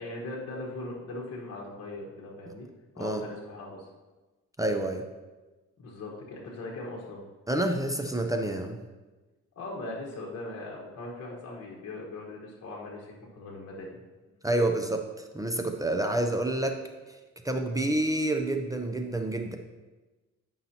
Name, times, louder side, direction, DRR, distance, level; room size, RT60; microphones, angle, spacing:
voice 1, 0.0-2.7 2.9-3.9 5.8-7.2 9.6-14.0, left 2 dB, 55° left, -3 dB, 1.3 m, -39 dB
voice 2, 4.6-5.0 7.5-8.8 14.4-16.8 17.1-17.2 17.4-19.6, right 1 dB, 10° right, 4 dB, 0.6 m, -28 dB
9.3 x 5.5 x 2.9 m, 1.2 s
cardioid pair, 90°, 30 cm